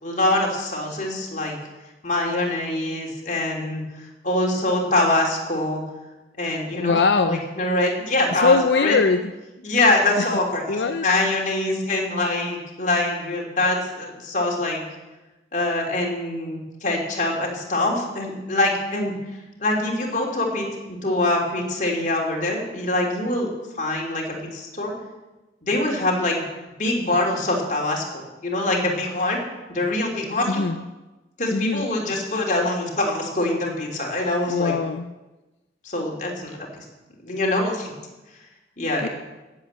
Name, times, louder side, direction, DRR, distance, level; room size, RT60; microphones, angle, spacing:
voice 1, 0.0-1.6 2.0-5.8 6.4-8.9 9.6-14.8 15.5-19.1 19.6-23.5 23.8-24.9 25.6-26.4 26.8-29.4 29.7-30.6 31.4-34.7 35.8-36.6 37.2-37.9 38.8-39.1, left 2 dB, 45° left, 0 dB, 3.2 m, -24 dB
voice 2, 6.7-7.5 8.3-9.3 10.2-10.3 10.7-11.1 30.5-30.8 31.5-31.9 34.5-35.1 39.0-39.1, left 4 dB, 75° left, 8 dB, 0.5 m, -21 dB
16.0 x 8.0 x 7.5 m, 1.1 s
head